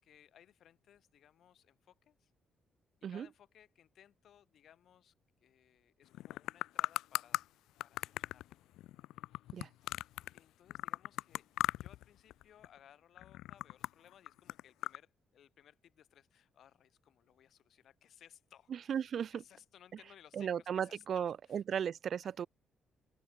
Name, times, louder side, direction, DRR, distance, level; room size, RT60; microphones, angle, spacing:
voice 1, 0.0-2.3 3.1-5.1 5.4-7.4 7.8-8.7 9.9-11.5 11.8-19.0 19.3-21.8 22.2-22.3, left 10 dB, 65° left, 5.2 m, -63 dB
sound 1, 6.1-7.4 7.8-10.4 10.7-12.0 12.3-12.8 13.2-15.0, left 15 dB, 90° left, 0.8 m, -38 dB
voice 2, 18.7-19.4 20.3-22.5, right 8 dB, 55° right, 0.6 m, -36 dB
open air
cardioid pair, 90°, 0 cm